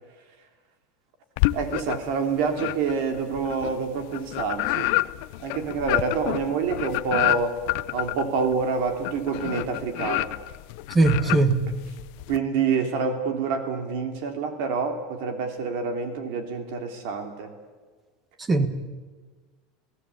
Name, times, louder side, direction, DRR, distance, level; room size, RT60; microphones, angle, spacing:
sound 1, 1.4-2.2 2.5-12.4, left 20 dB, 55° left, 0.6 m, -28 dB
voice 1, 1.5-4.9 5.4-7.6 7.9-10.3 12.3-17.5, right 5 dB, 60° right, 6 dB, 3.0 m, -27 dB
voice 2, 10.9-11.7 18.5-18.7, right 3 dB, 15° right, 10 dB, 1.5 m, -20 dB
29.0 x 17.5 x 8.5 m, 1.4 s
supercardioid pair, 170°, 0 cm